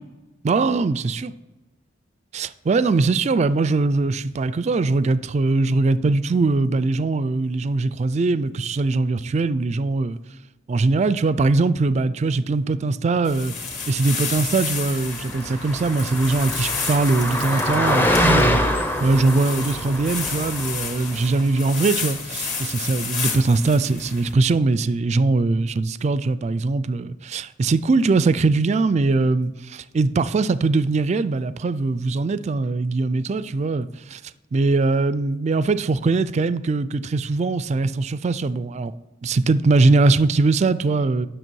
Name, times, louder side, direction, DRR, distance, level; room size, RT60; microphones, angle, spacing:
voice 1, 0.4-1.3 2.3-10.2 10.7-13.5 13.9-18.6 19.0-34.2 34.5-38.9 39.2-41.3, right 3 dB, 35° right, 0.3 m, -21 dB
sound 1, 13.2-24.3, left 5 dB, 45° left, 1.9 m, -31 dB
Car passing by, 15.1-21.1, equal, 10° left, 0.6 m, -24 dB
11.0 x 6.4 x 4.6 m
head